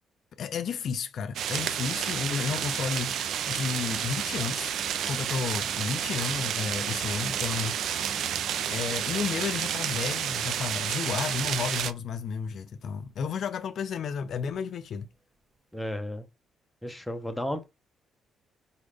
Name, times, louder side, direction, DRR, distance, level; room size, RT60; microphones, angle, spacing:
voice 1, 0.4-3.2 3.5-4.7 5.1-7.8 8.7-15.1, left 6 dB, 65° left, 0.4 m, -32 dB
sound 1, 1.3-11.9, right 9 dB, 75° right, 0.4 m, -30 dB
sound 2, 1.5-11.7 12.4-12.6 13.1-13.3 14.1-14.6 14.9-15.0 15.9-16.0, right 1 dB, 20° right, 0.7 m, -48 dB
voice 2, 15.7-16.3 16.8-17.6, equal, 5° left, 0.9 m, -33 dB
4.2 x 3.5 x 3.4 m
cardioid pair, 90°, 0 cm